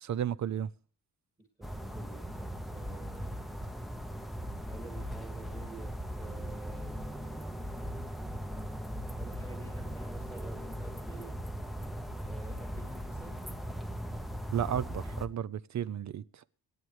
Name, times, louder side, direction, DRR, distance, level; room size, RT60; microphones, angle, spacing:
voice 1, 0.0-0.7 14.5-16.2, right 9 dB, 50° right, 0.5 m, -33 dB
voice 2, 1.4-3.4 4.7-7.5 9.2-11.4 12.2-13.4, right 3 dB, 15° right, 2.2 m, -51 dB
sound 1, 1.6-15.3, equal, ahead, 0.7 m, -39 dB
25.0 x 9.5 x 3.1 m
wide cardioid pair, 170°, 37 cm